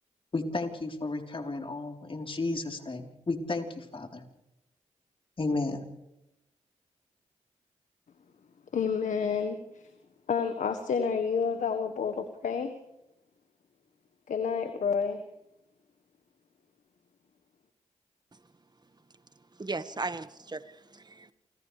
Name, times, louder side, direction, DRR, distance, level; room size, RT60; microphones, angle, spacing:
voice 1, 0.3-4.2 5.4-5.8, left 3 dB, 40° left, 3 dB, 4.0 m, -33 dB
voice 2, 8.7-9.8 10.3-12.8 14.3-15.2, left 6 dB, 70° left, 8 dB, 1.5 m, -29 dB
voice 3, 19.6-21.3, right 3 dB, 30° right, 12 dB, 1.6 m, -37 dB
28.5 x 26.5 x 3.4 m, 0.90 s
supercardioid pair, 45°, 13 cm